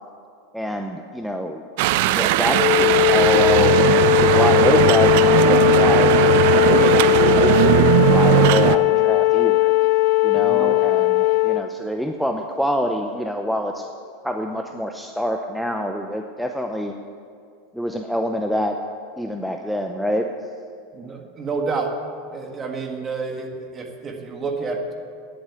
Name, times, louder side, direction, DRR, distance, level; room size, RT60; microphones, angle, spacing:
voice 1, 0.5-1.6 2.1-3.8 4.1-6.1 6.6-9.7 10.2-13.9 14.2-16.9 17.7-18.8 19.2-20.3, equal, ahead, 3 dB, 0.6 m, -26 dB
sound 1, 1.8-8.8, right 14 dB, 65° right, 0.4 m, -18 dB
Wind instrument woodwind instrument, 2.5-11.6, left 20 dB, 60° left, 0.6 m, -18 dB
voice 2, 10.3-10.8 20.9-21.9 22.3-24.9, right 4 dB, 25° right, 3 dB, 1.7 m, -29 dB
10.0 x 8.4 x 8.4 m, 2.3 s
supercardioid pair, 120°, 0 cm